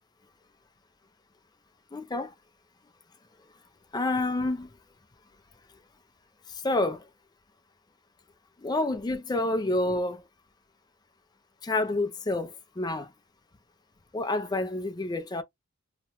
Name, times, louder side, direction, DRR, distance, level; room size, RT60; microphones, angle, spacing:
voice 1, 1.9-2.3 3.9-4.7 6.5-7.1 8.6-10.2 11.6-13.1 14.1-15.4, left 2 dB, 20° left, 0.4 m, -28 dB
2.9 x 2.2 x 2.8 m
head